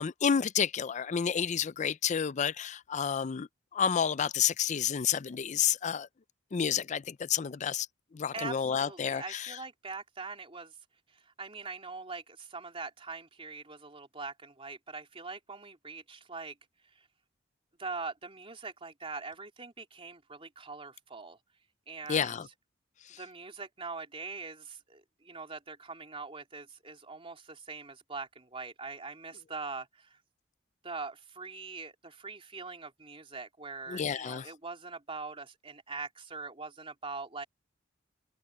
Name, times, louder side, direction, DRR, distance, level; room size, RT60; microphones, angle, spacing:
voice 1, 0.0-6.1 6.5-7.9 8.1-9.6 22.1-22.5 23.1-23.2 33.9-34.5, left 7 dB, 40° left, 0.4 m, -30 dB
voice 2, 8.3-10.7 11.4-16.5 16.9-17.1 17.8-21.4 21.9-22.4 23.2-30.2 30.8-37.4, right 4 dB, 30° right, 3.3 m, -42 dB
head